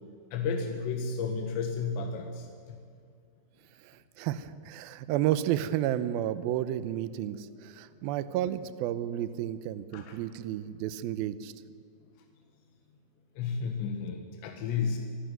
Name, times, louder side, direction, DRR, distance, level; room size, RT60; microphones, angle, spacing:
voice 1, 0.3-2.5 9.9-10.2 13.4-15.0, left 5 dB, 90° left, 4 dB, 3.7 m, -32 dB
voice 2, 3.8-11.5, right 12 dB, 75° right, 14 dB, 2.3 m, -31 dB
26.5 x 11.5 x 9.3 m, 2.3 s
omnidirectional pair, 4.9 m